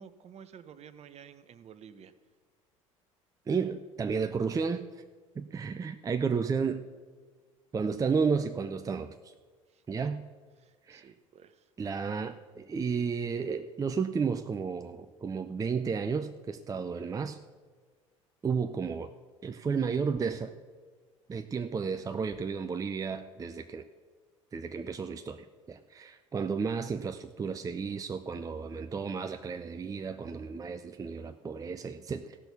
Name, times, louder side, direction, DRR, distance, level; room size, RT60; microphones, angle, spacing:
voice 1, 0.0-2.1 6.3-6.4 9.7-10.1 10.6-11.7, right 7 dB, 40° right, 13 dB, 0.9 m, -52 dB
voice 2, 3.5-4.9 5.4-6.9 7.7-9.3 9.9-10.2 10.9-11.1 11.8-17.4 18.4-19.1 19.4-20.5 21.3-23.9 24.5-32.4, right 5 dB, 20° right, 9 dB, 0.5 m, -32 dB
15.5 x 6.1 x 6.8 m, 1.5 s
hypercardioid pair, 65°, 17 cm